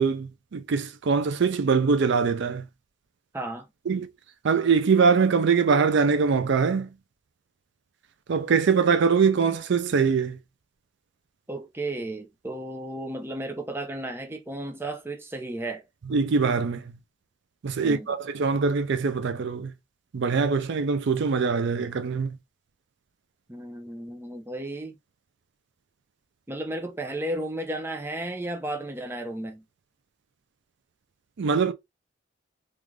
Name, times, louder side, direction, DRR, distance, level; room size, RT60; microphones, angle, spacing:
voice 1, 0.0-2.7 3.9-4.1 4.4-6.9 8.3-10.4 16.1-16.8 17.6-19.7 20.1-22.4 31.4-31.7, right 5 dB, 60° right, 0.4 m, -23 dB
voice 2, 3.3-3.7 11.5-15.9 17.8-18.1 23.5-25.0 26.5-29.6, right 1 dB, 10° right, 0.6 m, -34 dB
3.6 x 2.5 x 3.1 m
head